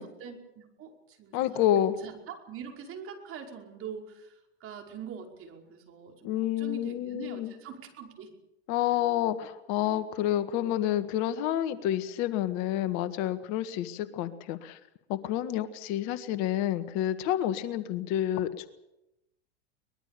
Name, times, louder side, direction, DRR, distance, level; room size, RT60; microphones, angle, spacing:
voice 1, 0.0-8.3, right 7 dB, 35° right, 2 dB, 5.4 m, -44 dB
voice 2, 1.3-1.9 6.2-7.5 8.7-14.8 15.1-18.7, left 12 dB, 50° left, 11 dB, 1.7 m, -29 dB
23.0 x 21.0 x 6.9 m, 0.91 s
hypercardioid pair, 105°, 36 cm